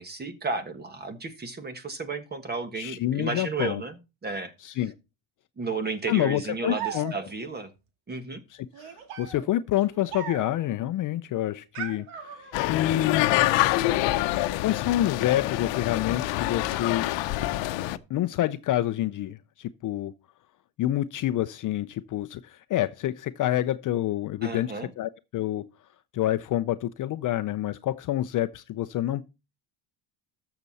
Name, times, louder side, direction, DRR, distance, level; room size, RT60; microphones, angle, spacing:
voice 1, 0.0-4.5 5.6-7.7 8.1-8.4 24.4-24.9, right 4 dB, 20° right, 1.4 m, -33 dB
voice 2, 2.8-3.8 4.6-4.9 6.1-7.1 8.5-13.4 14.6-17.1 18.1-20.1 20.8-25.6 26.1-29.3, left 13 dB, 40° left, 0.6 m, -28 dB
sound 1, 6.7-7.5 8.7-10.7 11.7-12.8, right 9 dB, 70° right, 2.3 m, -39 dB
sound 2, 12.5-18.0, left 16 dB, 60° left, 0.9 m, -26 dB
13.5 x 6.9 x 4.1 m
cardioid pair, 140°, 49 cm